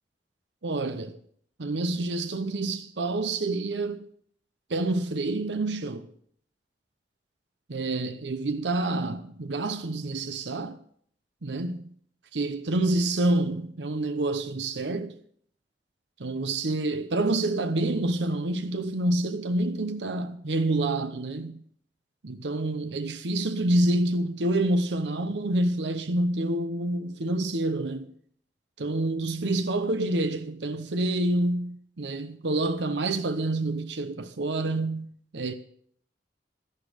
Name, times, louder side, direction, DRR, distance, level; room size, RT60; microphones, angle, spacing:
voice 1, 0.6-1.2 1.6-4.1 4.7-6.1 7.7-10.8 11.4-11.8 12.3-15.2 16.2-21.6 22.2-28.1 28.8-35.1 35.3-35.6, right 2 dB, 80° right, 0.9 m, -27 dB
12.0 x 11.5 x 5.1 m
head